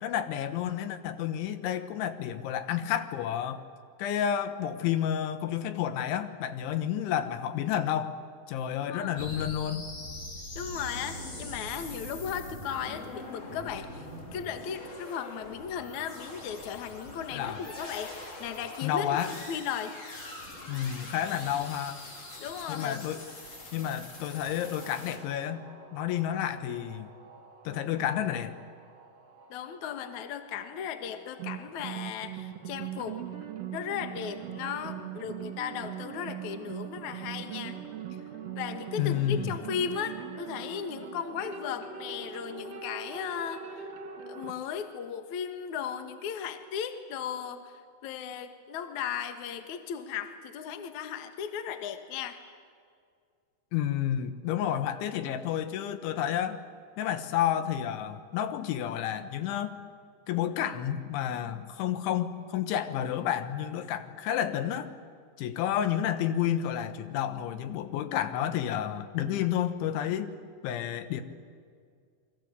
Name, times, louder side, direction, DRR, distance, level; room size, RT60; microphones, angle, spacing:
voice 1, 0.0-3.6 4.0-8.1 8.5-9.9 17.3-17.6 18.8-19.4 20.7-22.0 22.7-23.2 23.7-25.7 25.9-27.1 27.7-28.6 39.0-39.5 53.7-56.6 57.0-59.8 60.3-64.9 65.4-70.4 70.6-71.2, left 10 dB, 80° left, 10 dB, 3.6 m, -30 dB
voice 2, 8.9-9.4 10.6-14.1 14.3-19.2 19.5-20.2 22.4-23.0 29.5-33.2 33.7-37.8 38.6-43.9 44.3-47.7 48.0-52.4, left 8 dB, 60° left, 7 dB, 2.0 m, -36 dB
sound 1, 9.2-25.2, left 1 dB, 35° left, 4.9 m, -43 dB
sound 2, 24.6-44.5, right 8 dB, 45° right, 2.5 m, -42 dB
29.0 x 23.0 x 8.1 m, 2.2 s
omnidirectional pair, 5.5 m